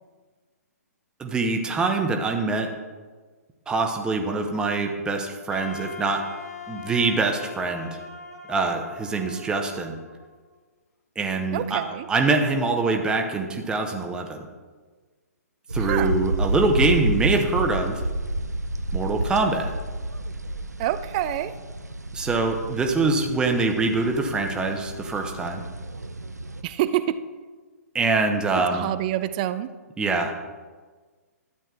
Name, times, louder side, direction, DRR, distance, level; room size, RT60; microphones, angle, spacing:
voice 1, 1.2-2.7 3.7-6.2 6.7-7.9 8.5-10.0 11.2-11.8 12.1-14.5 15.7-18.0 18.9-19.7 22.1-25.6 27.9-28.9 30.0-30.3, right 3 dB, 10° right, 3 dB, 0.7 m, -24 dB
Wind instrument woodwind instrument, 5.5-10.5, left 6 dB, 75° left, 1.1 m, -41 dB
voice 2, 11.5-12.1 15.9-16.2 20.8-21.5 26.6-27.2 28.5-29.7, right 13 dB, 30° right, 13 dB, 0.4 m, -27 dB
sound 1, 15.7-26.6, right 1 dB, 85° right, 0.5 m, -30 dB
12.0 x 8.6 x 2.4 m, 1.4 s
figure-of-eight pair, 125°, 9 cm